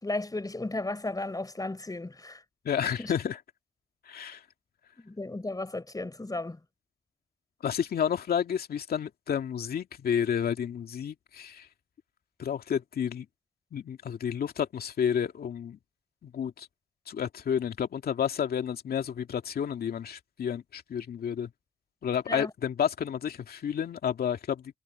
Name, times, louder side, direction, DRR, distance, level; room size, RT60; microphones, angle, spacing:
voice 1, 0.0-2.4 2.8-3.1 5.0-6.6 22.3-22.5, left 2 dB, 20° left, 4.4 m, -34 dB
voice 2, 2.6-3.4 4.1-4.4 7.6-11.7 12.4-13.3 13.7-15.8 16.2-16.7 17.1-21.5 22.0-24.8, left 8 dB, 65° left, 2.4 m, -30 dB
supercardioid pair, 50°, 17 cm